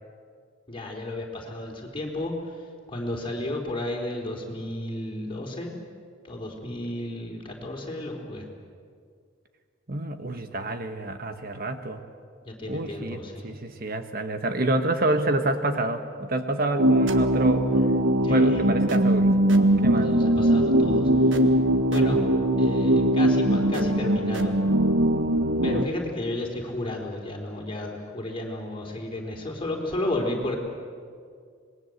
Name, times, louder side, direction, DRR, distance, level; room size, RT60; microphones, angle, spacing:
voice 1, 0.7-5.8 6.2-8.5 12.4-13.5 18.2-18.6 19.9-21.5 21.8-22.2 22.6-24.5 25.6-30.6, left 1 dB, 25° left, 0 dB, 4.1 m, -33 dB
voice 2, 9.9-12.0 12.7-17.7 18.3-19.3 19.8-20.1, right 2 dB, 50° right, 7 dB, 1.2 m, -28 dB
sound 1, 16.8-25.8, right 1 dB, 70° right, 1.7 m, -21 dB
26.5 x 21.0 x 8.0 m, 2.1 s
head